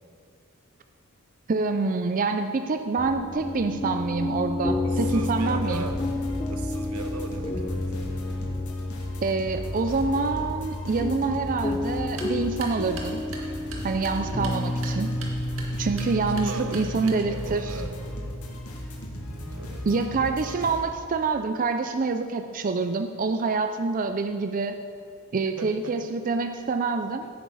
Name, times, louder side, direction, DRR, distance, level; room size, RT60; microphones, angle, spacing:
voice 1, 1.5-5.9 9.2-13.2 13.8-15.1 15.8-17.8 19.9-24.8 25.3-27.3, right 4 dB, 40° right, 8 dB, 0.4 m, -26 dB
sound 1, 3.0-20.8, left 2 dB, 20° left, 0.5 m, -32 dB
voice 2, 4.8-6.0 6.5-8.0 16.3-18.0 19.6-19.9 25.6-26.0, right 3 dB, 90° right, 7 dB, 1.0 m, -38 dB
sound 2, 5.0-20.8, equal, 80° left, 2.3 m, -38 dB
sound 3, 12.0-17.5, right 3 dB, 65° right, 2.0 m, -43 dB
16.5 x 9.4 x 4.1 m, 2.4 s
head